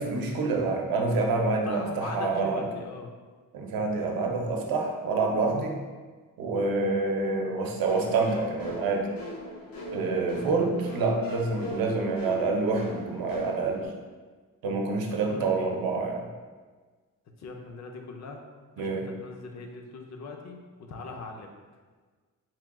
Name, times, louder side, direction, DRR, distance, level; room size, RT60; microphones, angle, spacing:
voice 1, 0.0-2.6 3.5-5.8 6.4-9.1 9.9-13.9 14.6-16.3 18.8-19.1, right 3 dB, 85° right, 1 dB, 0.7 m, -27 dB
voice 2, 1.7-3.1 10.4-10.6 15.2-15.7 17.4-18.4 18.7-21.5, left 3 dB, 50° left, 3 dB, 0.5 m, -41 dB
sound 1, 7.8-13.8, left 1 dB, 90° left, 0.8 m, -39 dB
4.4 x 2.2 x 3.6 m, 1.4 s
wide cardioid pair, 165°, 34 cm